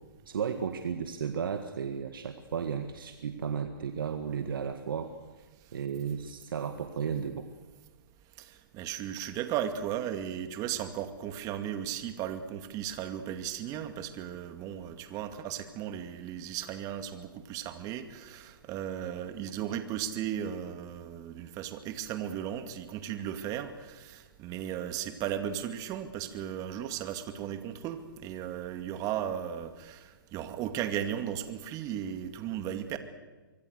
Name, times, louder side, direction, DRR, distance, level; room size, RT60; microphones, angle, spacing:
voice 1, 0.3-5.1 5.7-7.5, right 7 dB, 75° right, 7 dB, 1.7 m, -34 dB
voice 2, 8.4-33.0, right 10 dB, 30° right, 8 dB, 2.3 m, -36 dB
25.0 x 25.0 x 6.6 m, 1.3 s
hypercardioid pair, 130°, 12 cm